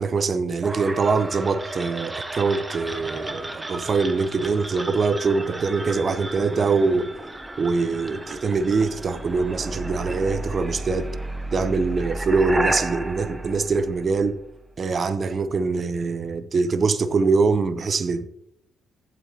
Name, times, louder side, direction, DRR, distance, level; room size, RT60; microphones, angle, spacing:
voice 1, 0.0-7.1 7.6-11.1 11.5-14.4 14.8-18.3, right 4 dB, 40° right, 0.7 m, -23 dB
sound 1, 0.6-14.5, right 2 dB, 15° right, 0.9 m, -33 dB
15.0 x 8.4 x 2.8 m
cardioid pair, 90°, 0 cm